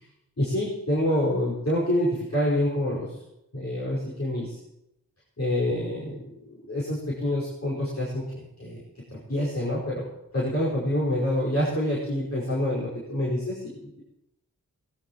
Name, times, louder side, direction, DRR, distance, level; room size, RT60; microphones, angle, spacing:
voice 1, 0.4-3.1 3.5-4.6 5.4-8.2 8.6-8.8 9.1-10.1 10.3-14.0, left 1 dB, 45° left, -7 dB, 5.3 m, -27 dB
19.0 x 18.0 x 3.2 m, 0.86 s
wide cardioid pair, 60°, 35 cm